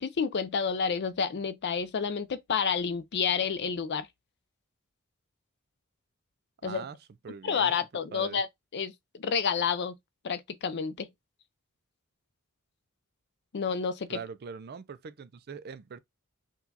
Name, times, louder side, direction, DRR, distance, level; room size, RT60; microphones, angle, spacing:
voice 1, 0.0-4.1 6.6-6.8 7.4-8.5 8.7-10.0 10.2-11.1 13.5-14.2, left 6 dB, 50° left, 0.5 m, -29 dB
voice 2, 6.6-7.0 7.2-7.7 8.1-8.4 14.1-16.0, right 5 dB, 45° right, 0.4 m, -42 dB
4.6 x 2.3 x 3.9 m
head